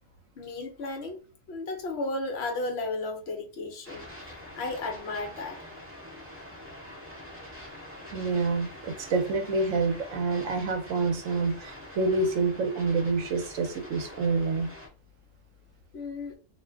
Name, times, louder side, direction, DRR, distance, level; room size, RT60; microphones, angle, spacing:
voice 1, 0.4-1.2 1.5-5.6 5.9-6.1 15.9-16.4, left 2 dB, 60° left, 0.8 m, -34 dB
sound 1, 3.8-14.9, left 1 dB, 10° right, 0.8 m, -45 dB
voice 2, 8.1-14.7, right 3 dB, 75° right, 1.0 m, -27 dB
2.4 x 2.1 x 3.4 m
omnidirectional pair, 1.4 m